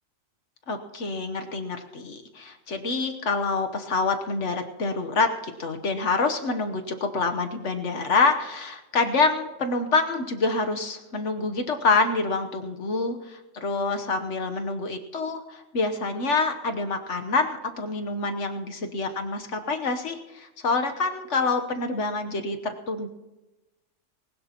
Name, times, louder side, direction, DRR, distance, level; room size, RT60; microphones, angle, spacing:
voice 1, 0.7-23.1, left 3 dB, 65° left, 6 dB, 1.4 m, -26 dB
20.5 x 18.5 x 2.9 m, 1.1 s
omnidirectional pair, 1.3 m